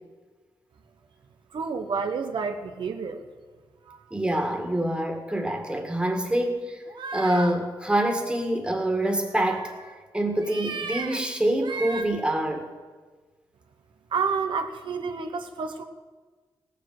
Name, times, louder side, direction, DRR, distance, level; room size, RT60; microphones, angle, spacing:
voice 1, 1.5-3.2 3.9-4.0 14.1-15.8, right 5 dB, 80° right, 6 dB, 1.1 m, -29 dB
voice 2, 4.1-6.8 7.1-9.7 10.1-12.7, right 1 dB, 10° right, 4 dB, 1.9 m, -26 dB
sound 1, 6.9-7.5 9.3-9.9 10.4-11.2 11.6-12.0, right 4 dB, 65° right, 1.4 m, -35 dB
17.5 x 7.4 x 7.9 m, 1.4 s
wide cardioid pair, 110°, 8 cm